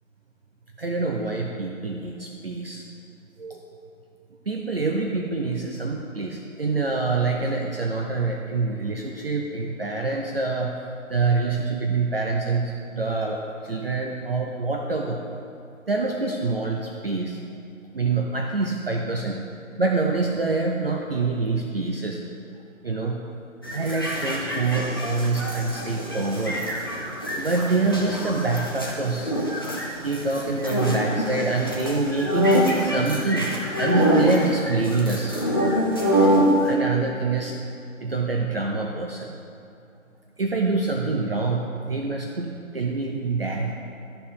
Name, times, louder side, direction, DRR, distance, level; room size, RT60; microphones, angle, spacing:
voice 1, 0.8-2.8 3.4-3.6 4.5-10.8 11.1-15.2 15.9-17.4 17.9-19.4 19.8-22.2 22.8-23.2 23.7-26.6 27.4-29.4 30.0-33.5 33.8-35.4 36.6-37.6 38.0-39.4 40.4-43.8, right 3 dB, 45° right, 1 dB, 0.8 m, -26 dB
sound 1, 23.6-36.7, equal, 20° left, 0.6 m, -25 dB
13.0 x 4.8 x 5.5 m, 2.7 s
figure-of-eight pair, 150°, 40 cm